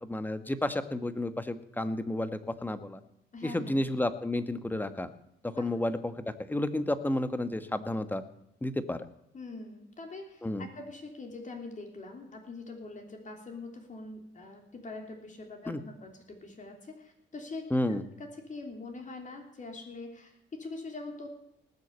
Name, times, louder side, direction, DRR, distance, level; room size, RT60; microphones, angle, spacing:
voice 1, 0.0-3.0 3.4-5.1 5.4-8.2 8.6-9.1 10.4-10.7 15.7-15.8 17.7-18.0, left 1 dB, 10° left, 10 dB, 1.3 m, -31 dB
voice 2, 3.3-3.7 5.5-5.7 9.3-17.7 18.2-21.3, left 3 dB, 40° left, 2 dB, 3.3 m, -43 dB
19.0 x 6.5 x 8.1 m, 0.82 s
cardioid pair, 90°, 20 cm